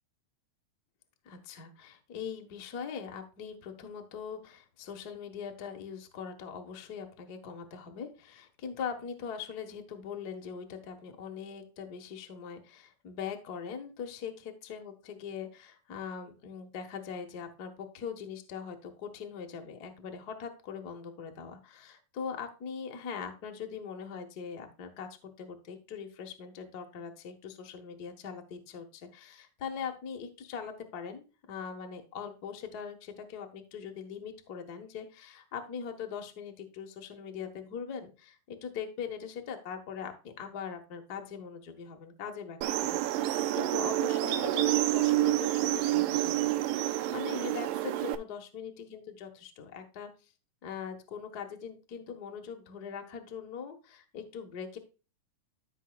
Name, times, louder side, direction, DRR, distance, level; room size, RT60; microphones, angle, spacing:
voice 1, 1.2-46.5 46.8-50.1 50.6-54.8, left 7 dB, 65° left, 4 dB, 0.9 m, -41 dB
sound 1, 42.6-48.2, right 14 dB, 80° right, 2.4 m, -28 dB
14.0 x 5.5 x 2.3 m, 0.32 s
omnidirectional pair, 4.0 m